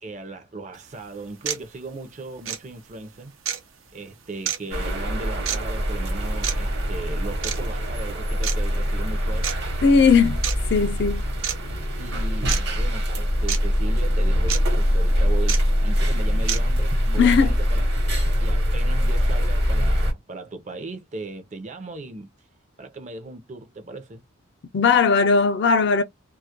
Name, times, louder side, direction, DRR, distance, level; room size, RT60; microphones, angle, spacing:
voice 1, 0.0-3.3 3.9-9.5 11.9-17.8 18.2-22.3 22.8-24.2, right 2 dB, 35° right, 0.5 m, -37 dB
sound 1, 0.7-0.8 1.4-1.6 2.4-2.6 3.4-3.6 4.4-4.6 5.4-5.6 6.4-6.5 7.4-7.6 8.4-8.5 9.4-9.5 10.4-10.6 11.4-11.6 12.5-12.6 13.5-13.6 14.5-14.6 15.5-15.6 16.5-16.6, right 9 dB, 90° right, 0.6 m, -27 dB
sound 2, 4.7-20.1, equal, 55° right, 0.9 m, -23 dB
voice 2, 9.8-10.4 10.7-11.2 17.2-17.5 24.7-26.0, left 5 dB, 60° left, 0.4 m, -18 dB
2.3 x 2.0 x 2.7 m
head